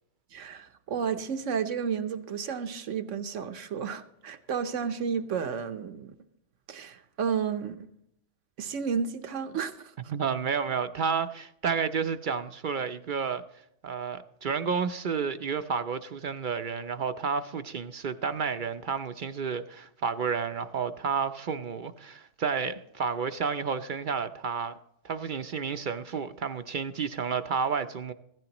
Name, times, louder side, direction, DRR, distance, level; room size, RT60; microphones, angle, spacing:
voice 1, 0.3-6.1 6.7-7.8 8.6-9.9, right 6 dB, 85° right, 1.2 m, -32 dB
voice 2, 10.1-13.4 13.8-24.7 25.0-28.1, right 6 dB, 55° right, 0.6 m, -31 dB
16.0 x 13.5 x 2.9 m
omnidirectional pair, 1.2 m